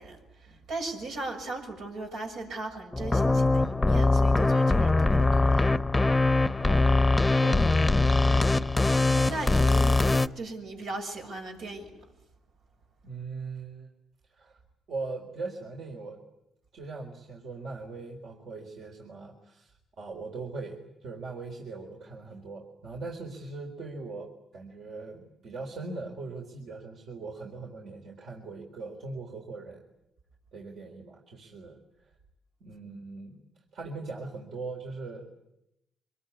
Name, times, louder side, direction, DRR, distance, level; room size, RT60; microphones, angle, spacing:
voice 1, 0.0-5.8 7.5-7.6 8.2-8.6 9.1-11.9, right 2 dB, 80° right, 2 dB, 6.6 m, -38 dB
sound 1, 2.9-10.3, left 3 dB, 15° left, 0.9 m, -22 dB
voice 2, 6.6-7.9 13.0-13.9 14.3-14.6 14.9-16.2 16.7-29.8 30.5-31.8 32.6-33.4 33.7-35.3, right 3 dB, 65° right, 0 dB, 3.9 m, -40 dB
25.0 x 21.0 x 9.8 m, 0.86 s
cardioid pair, 90°, 0 cm